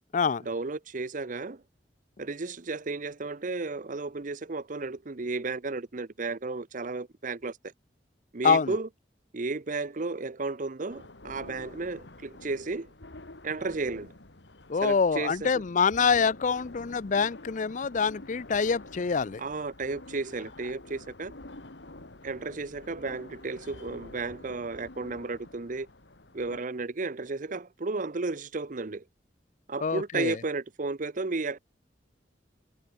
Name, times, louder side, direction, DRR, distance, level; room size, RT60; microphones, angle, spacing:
voice 1, 0.4-1.6 2.2-7.7 8.3-8.9 9.3-12.9 13.4-14.1 14.8-15.5 19.4-21.3 22.2-25.9 26.3-29.0 29.7-31.6, right 3 dB, 45° right, 0.8 m, -33 dB
voice 2, 8.4-8.8 14.7-19.4 29.8-30.4, left 5 dB, 45° left, 0.5 m, -25 dB
sound 1, 10.9-26.6, left 2 dB, 80° left, 2.5 m, -48 dB
head